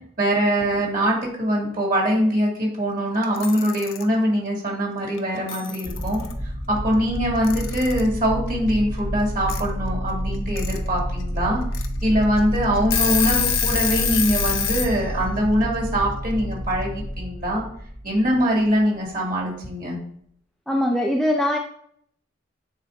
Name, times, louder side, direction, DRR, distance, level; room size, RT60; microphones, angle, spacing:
voice 1, 0.2-6.2 6.7-11.6 12.0-17.6 18.0-20.0, equal, 45° right, -2 dB, 2.3 m, -23 dB
Alarm / Clock, 3.2-4.0 5.2-5.3 5.5-6.3 7.4-8.1 9.5-9.6 10.3-10.8 11.2-11.3 11.7-11.9 12.4-12.5 12.8-14.9, left 8 dB, 85° left, 0.7 m, -25 dB
sound 1, 5.8-18.8, equal, 15° right, 1.1 m, -29 dB
voice 2, 20.7-21.6, left 1 dB, ahead, 1 dB, 0.3 m, -21 dB
9.3 x 4.2 x 2.6 m, 0.64 s
head